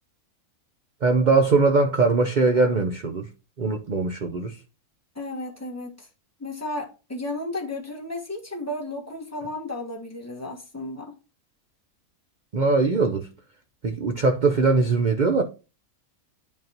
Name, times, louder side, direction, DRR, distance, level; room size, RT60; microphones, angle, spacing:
voice 1, 1.0-3.3 3.6-4.6 12.5-13.3 13.8-15.4, right 3 dB, 50° right, 0.5 m, -21 dB
voice 2, 5.1-6.1 6.4-11.1, left 2 dB, 10° left, 1.5 m, -33 dB
9.1 x 5.3 x 2.9 m
omnidirectional pair, 1.6 m